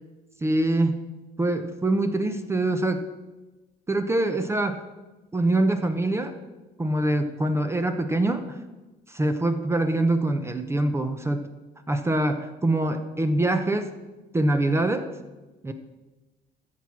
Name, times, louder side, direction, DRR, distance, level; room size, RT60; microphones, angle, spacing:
voice 1, 0.4-1.0 1.4-3.1 3.9-4.8 5.3-6.4 6.8-8.6 9.1-11.5 11.9-13.9 14.3-15.1 15.6-15.7, right 1 dB, 15° right, 8 dB, 0.7 m, -24 dB
13.5 x 4.6 x 7.2 m, 1.1 s
cardioid pair, 110°, 17 cm